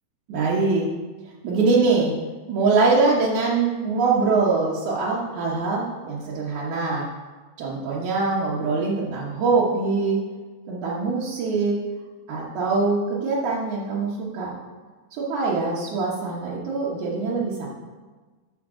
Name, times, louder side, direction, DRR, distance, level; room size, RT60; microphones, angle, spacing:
voice 1, 0.3-0.9 1.4-2.1 2.5-7.1 7.6-10.2 10.7-11.8 12.3-14.5 15.1-17.7, right 4 dB, 90° right, -6 dB, 2.7 m, -23 dB
12.0 x 6.5 x 3.8 m, 1.4 s
omnidirectional pair, 3.3 m